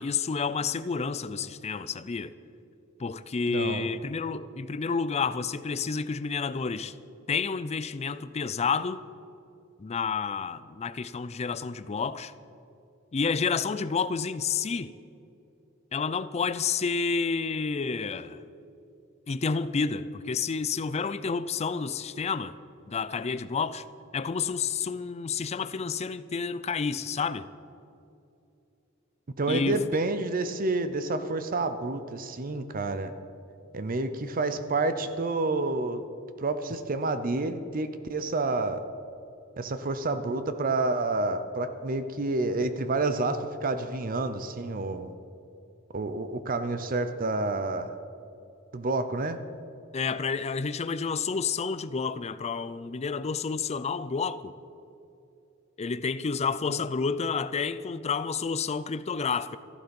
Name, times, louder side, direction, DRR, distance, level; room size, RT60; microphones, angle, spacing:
voice 1, 0.0-2.3 3.0-6.9 7.3-9.0 9.8-12.3 13.1-14.9 15.9-18.4 19.3-22.6 22.9-23.8 24.1-27.5 29.5-29.8 49.9-54.5 55.8-59.6, left 5 dB, 30° left, 0.4 m, -30 dB
voice 2, 3.5-3.9 29.4-33.1 33.7-36.0 36.4-38.8 39.6-45.1 45.9-47.9 48.7-49.4 56.7-56.8, right 2 dB, 45° right, 0.6 m, -29 dB
14.0 x 11.5 x 5.3 m
head